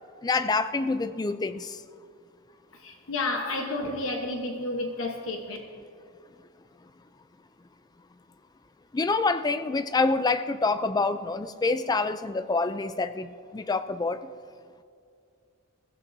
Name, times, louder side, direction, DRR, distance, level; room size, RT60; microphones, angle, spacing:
voice 1, 0.2-1.8 8.9-14.2, left 3 dB, 20° left, 0.3 m, -27 dB
voice 2, 2.7-5.6, left 2 dB, 60° left, 1.1 m, -31 dB
21.5 x 15.5 x 2.7 m
head